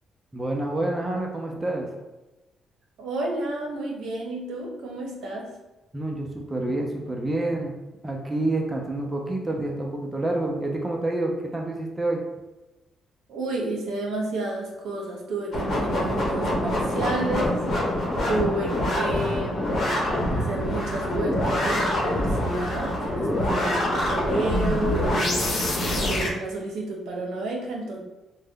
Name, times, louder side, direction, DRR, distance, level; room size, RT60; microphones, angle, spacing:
voice 1, 0.3-1.9 5.9-7.7 8.0-12.2, right 2 dB, 20° right, 0 dB, 0.5 m, -28 dB
voice 2, 3.0-5.6 13.3-20.0 20.3-25.5 25.8-28.0, right 2 dB, 80° right, -1 dB, 0.7 m, -31 dB
sound 1, 15.5-26.3, left 1 dB, 55° left, 0.9 m, -25 dB
2.5 x 2.1 x 3.6 m, 1.0 s
cardioid pair, 90°, 0 cm